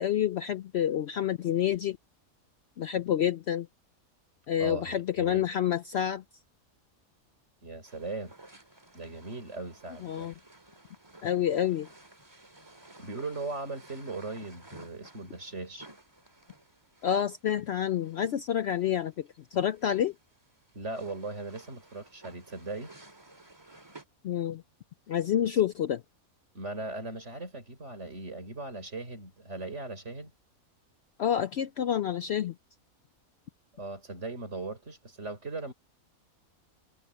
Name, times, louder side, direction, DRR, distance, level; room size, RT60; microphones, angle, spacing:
voice 1, 0.0-2.0 2.8-3.7 4.5-6.2 10.0-10.3 11.2-11.9 17.0-20.1 24.2-24.6 25.1-26.0 31.2-32.5, left 10 dB, 65° left, 0.7 m, -28 dB
voice 2, 4.6-5.5 7.6-8.3 8.9-10.3 13.0-15.9 20.7-22.9 25.4-25.6 26.5-30.3 33.7-35.7, right 3 dB, 50° right, 4.7 m, -39 dB
sound 1, 7.8-24.0, right 2 dB, 20° right, 2.0 m, -55 dB
omnidirectional pair, 1.5 m